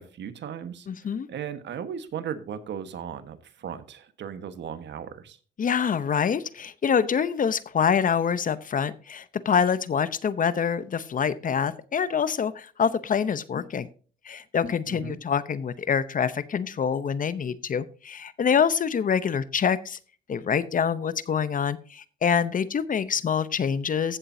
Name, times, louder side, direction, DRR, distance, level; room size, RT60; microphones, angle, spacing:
voice 1, 0.0-0.9 1.3-5.4 14.9-15.2, right 8 dB, 65° right, 11 dB, 1.4 m, -36 dB
voice 2, 0.9-1.3 5.6-13.9 14.2-20.0 20.3-24.2, left 7 dB, 45° left, 16 dB, 0.8 m, -26 dB
15.0 x 7.3 x 2.7 m, 0.39 s
cardioid pair, 90°, 20 cm